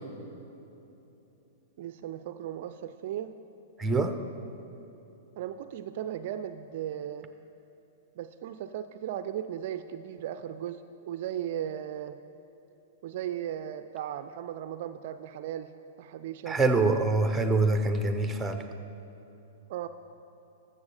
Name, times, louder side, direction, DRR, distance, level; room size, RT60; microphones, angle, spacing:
voice 1, 1.8-3.3 5.4-7.3 8.2-10.8 11.1-12.2 13.0-15.7 16.0-16.6 19.7-19.9, right 10 dB, 55° right, 11 dB, 0.4 m, -36 dB
voice 2, 3.8-4.2 16.5-18.6, right 3 dB, 10° right, 7 dB, 0.8 m, -25 dB
14.0 x 7.1 x 4.9 m, 3.0 s
hypercardioid pair, 110°, 0 cm